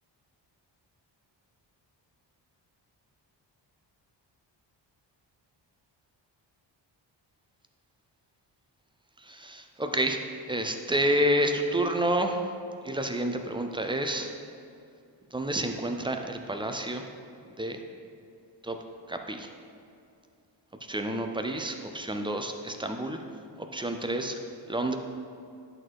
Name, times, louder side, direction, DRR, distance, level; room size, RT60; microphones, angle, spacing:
voice 1, 9.2-10.2 10.5-12.4 12.8-14.3 15.3-17.0 17.6-17.8 18.6-18.8 19.1-19.5 20.9-23.2 23.7-24.4 24.7-25.0, right 1 dB, 10° right, 5 dB, 0.4 m, -29 dB
11.0 x 4.3 x 4.6 m, 2.5 s
wide cardioid pair, 160°, 45 cm